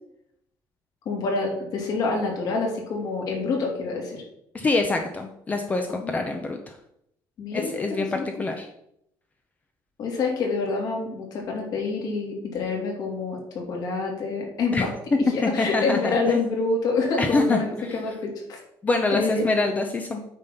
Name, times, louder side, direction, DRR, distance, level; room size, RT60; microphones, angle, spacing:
voice 1, 1.0-4.2 5.9-6.3 7.4-8.5 10.0-14.9 15.3-17.6 17.9-18.6 19.1-19.5, left 4 dB, 55° left, 0 dB, 2.9 m, -27 dB
voice 2, 4.5-6.8 7.5-8.7 14.7-16.4 17.2-18.0 18.8-20.2, left 3 dB, 20° left, 4 dB, 0.7 m, -25 dB
8.9 x 4.0 x 6.9 m, 0.75 s
cardioid pair, 165°, 8 cm